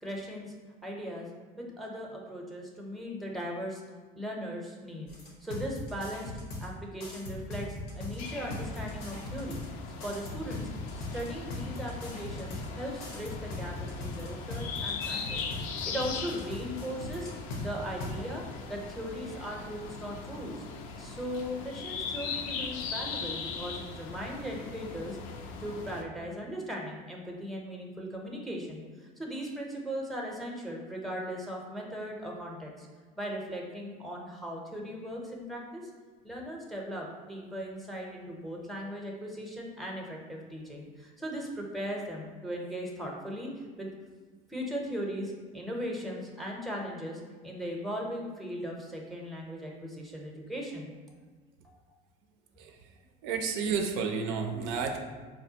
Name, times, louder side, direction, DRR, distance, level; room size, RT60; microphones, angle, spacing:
voice 1, 0.0-0.5 0.8-1.3 1.6-3.8 4.2-5.1 5.4-6.3 6.6-9.6 10.0-10.7 11.1-15.4 15.9-17.3 17.6-18.4 18.7-20.6 21.0-25.2 25.6-32.9 33.2-35.9 36.2-43.5 43.8-43.9 44.5-50.9, equal, ahead, -1 dB, 0.6 m, -38 dB
sound 1, 5.1-6.7 7.0-9.7 10.0-12.7 13.0-17.6 18.0-18.1, left 2 dB, 90° left, 0.8 m, -39 dB
sound 2, 8.2-26.0, left 5 dB, 75° left, 0.5 m, -40 dB
voice 2, 53.2-55.0, right 5 dB, 75° right, 4 dB, 0.5 m, -31 dB
4.6 x 2.2 x 2.7 m, 1.4 s
supercardioid pair, 105°, 20 cm